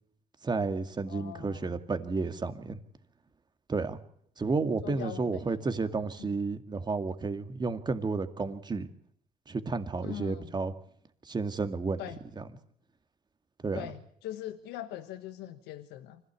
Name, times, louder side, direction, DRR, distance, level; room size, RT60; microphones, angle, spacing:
voice 1, 0.4-2.8 3.7-4.0 4.4-8.9 9.5-10.7 11.3-12.0 12.4-12.5 13.6-13.9, right 4 dB, 25° right, 9 dB, 2.1 m, -31 dB
voice 2, 1.1-1.8 4.8-5.9 6.2-6.3 10.0-10.5 12.0-12.2 13.7-16.2, left 13 dB, 90° left, 9 dB, 1.4 m, -42 dB
25.0 x 16.0 x 8.4 m, 0.66 s
cardioid pair, 110°, 17 cm